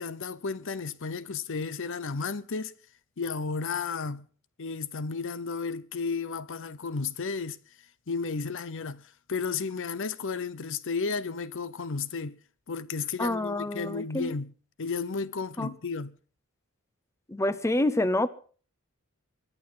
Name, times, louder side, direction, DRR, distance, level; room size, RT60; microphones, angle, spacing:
voice 1, 0.0-2.7 3.2-4.2 4.6-7.6 8.1-9.0 9.3-12.4 12.7-14.5 14.8-16.1, left 4 dB, 60° left, 0.8 m, -33 dB
voice 2, 13.2-14.3 15.6-15.7 17.3-18.3, left 1 dB, 15° left, 0.7 m, -27 dB
23.0 x 9.6 x 5.7 m
head